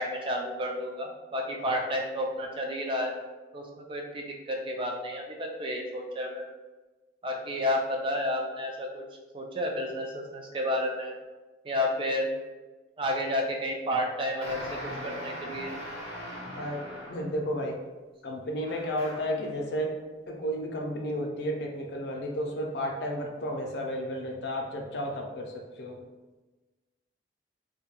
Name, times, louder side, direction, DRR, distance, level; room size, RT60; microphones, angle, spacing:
voice 1, 0.0-3.1 3.5-6.5 7.2-9.0 9.3-11.2 11.6-12.3 13.0-15.7, left 1 dB, 25° right, 1 dB, 0.3 m, -31 dB
sound 1, 14.4-17.4 18.6-19.4, equal, 85° right, 1.1 m, -40 dB
voice 2, 17.1-17.8 18.2-19.9 20.3-26.0, equal, 65° left, 1 dB, 0.4 m, -32 dB
2.2 x 2.2 x 2.9 m, 1.2 s
head